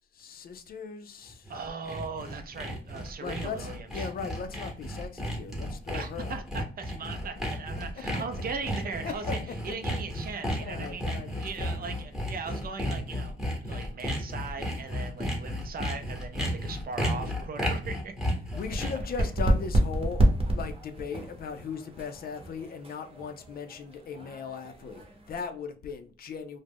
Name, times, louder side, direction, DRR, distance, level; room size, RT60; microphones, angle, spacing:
voice 1, 0.1-1.5 3.2-6.4 9.0-9.4 9.7-9.8 10.6-11.8 18.5-20.2 20.5-26.6, left 5 dB, 50° left, 0.4 m, -38 dB
Sawing, 1.3-19.1, equal, ahead, 0.9 m, -33 dB
voice 2, 1.5-4.1 5.9-13.4 13.6-18.1 18.7-18.9 19.2-19.3, right 4 dB, 50° right, 0.5 m, -39 dB
sound 1, 18.5-25.4, right 1 dB, 30° right, 0.9 m, -29 dB
2.4 x 2.1 x 3.3 m
cardioid pair, 90°, 20 cm